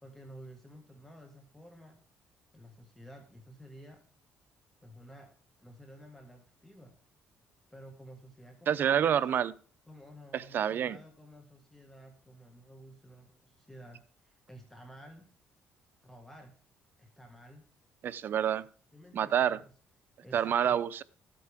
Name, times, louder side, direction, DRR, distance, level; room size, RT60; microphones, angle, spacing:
voice 1, 0.0-2.0 2.5-4.1 4.8-7.0 7.7-9.3 9.9-15.3 16.0-16.6 17.0-17.6 18.9-19.6 20.2-20.8, equal, 5° left, 1.7 m, -52 dB
voice 2, 8.7-9.5 10.3-11.0 18.0-18.6 19.1-19.6 20.3-21.0, right 9 dB, 50° right, 0.6 m, -28 dB
13.0 x 8.5 x 3.5 m
cardioid pair, 110°, 4 cm